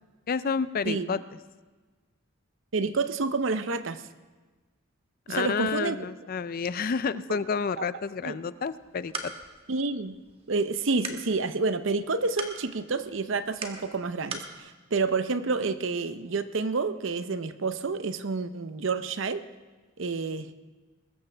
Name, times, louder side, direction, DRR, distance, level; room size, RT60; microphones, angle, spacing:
voice 1, 0.3-1.2 5.3-9.3, left 5 dB, 45° left, 15 dB, 0.4 m, -30 dB
voice 2, 0.9-1.2 2.7-4.0 5.3-6.0 7.8-7.9 8.2-8.4 9.7-10.1 10.5-19.4 20.0-20.5, right 4 dB, 65° right, 11 dB, 0.7 m, -29 dB
sound 1, 8.7-14.6, right 3 dB, 30° right, 1.3 m, -42 dB
22.0 x 13.5 x 3.4 m, 1.3 s
head